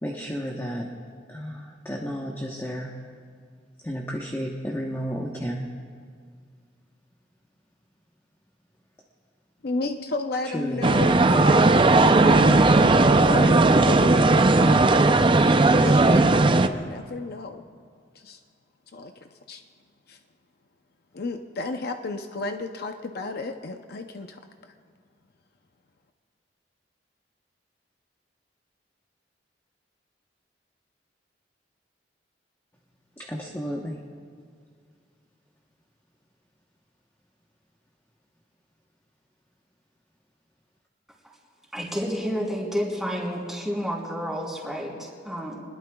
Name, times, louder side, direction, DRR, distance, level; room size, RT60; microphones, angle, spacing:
voice 1, 0.0-0.9 1.3-2.9 3.8-5.7 10.4-10.9 16.1-16.3 33.2-34.0, equal, 15° left, -1 dB, 1.0 m, -32 dB
voice 2, 9.6-11.6 12.0-14.8 15.8-16.1 16.7-17.6 18.1-18.4 18.9-19.6 20.1-20.2 21.1-24.7, left 3 dB, 60° left, 6 dB, 0.7 m, -33 dB
sound 1, 10.8-16.7, right 2 dB, 30° right, 0.5 m, -17 dB
voice 3, 41.7-45.6, equal, ahead, -3 dB, 3.4 m, -30 dB
25.5 x 21.0 x 2.3 m, 2.1 s
head